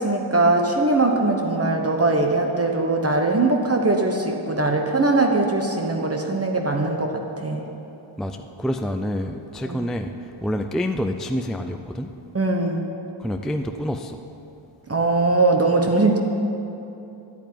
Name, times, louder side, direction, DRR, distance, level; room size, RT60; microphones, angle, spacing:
voice 1, 0.0-7.6 9.6-9.8 12.3-12.8 14.9-16.2, right 2 dB, 30° right, 2 dB, 1.2 m, -21 dB
voice 2, 8.2-10.1 10.4-12.1 13.2-14.2, equal, ahead, 5 dB, 0.5 m, -27 dB
11.0 x 8.9 x 9.4 m, 2.9 s
wide cardioid pair, 105°, 49 cm